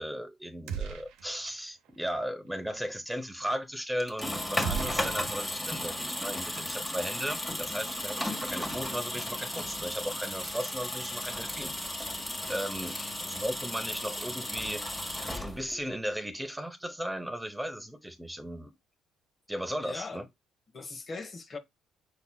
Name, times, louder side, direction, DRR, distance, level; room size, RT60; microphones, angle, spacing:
voice 1, 0.0-11.7 12.1-14.8 15.3-18.7 19.5-20.2, equal, 5° right, 0.8 m, -36 dB
sound 1, 0.7-1.6 1.8-2.0 4.6-5.9, right 8 dB, 85° right, 0.8 m, -37 dB
sound 2, 4.0-15.9, left 1 dB, 10° left, 1.5 m, -35 dB
voice 2, 19.8-20.2 20.7-21.6, left 4 dB, 40° left, 1.1 m, -40 dB
5.8 x 3.9 x 2.2 m
supercardioid pair, 75°, 0 cm